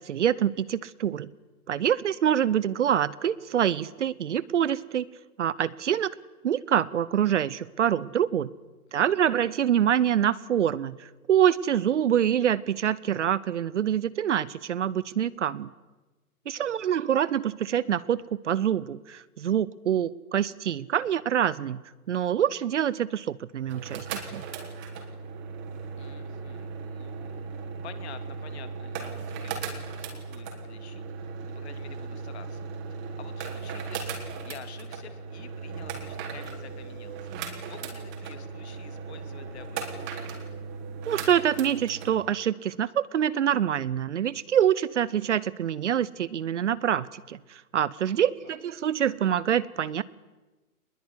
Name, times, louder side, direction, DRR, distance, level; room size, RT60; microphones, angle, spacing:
voice 1, 0.0-1.3 1.7-5.1 5.4-6.1 6.4-8.5 8.9-15.7 16.5-21.8 22.1-24.1 24.3-24.4 41.1-50.0, right 9 dB, 50° right, 20 dB, 0.9 m, -25 dB
voice 2, 8.9-9.4 16.4-16.9 26.0-40.2 48.4-48.6, left 9 dB, 45° left, 10 dB, 2.7 m, -49 dB
sound 1, 23.6-42.1, right 5 dB, 25° right, 4.0 m, -37 dB
24.5 x 21.0 x 9.9 m, 1.2 s
figure-of-eight pair, 125°, 45 cm